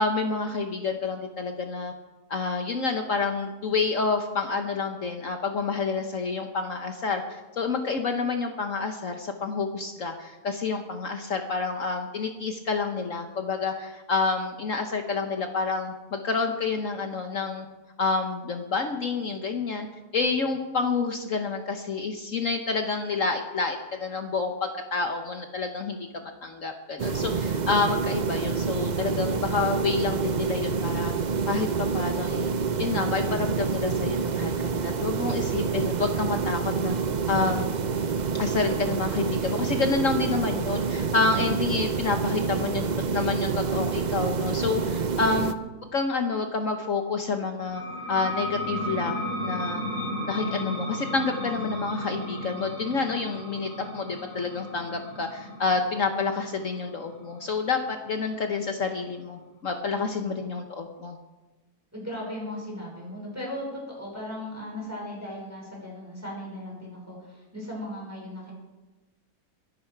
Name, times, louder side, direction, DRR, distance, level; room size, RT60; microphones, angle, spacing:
voice 1, 0.0-1.9 2.3-17.7 18.0-19.9 20.1-26.0 26.2-31.1 31.5-32.5 32.8-36.9 37.3-37.7 38.3-45.5 45.9-47.8 48.1-49.8 50.3-61.2, left 4 dB, 55° left, 5 dB, 1.3 m, -28 dB
sound 1, 27.0-45.5, right 5 dB, 65° right, 0.4 m, -27 dB
sound 2, 47.6-58.9, equal, 80° left, 4.1 m, -34 dB
voice 2, 60.2-60.6 61.9-68.5, left 1 dB, 10° right, -4 dB, 5.5 m, -37 dB
23.0 x 10.5 x 4.7 m, 1.2 s
omnidirectional pair, 1.7 m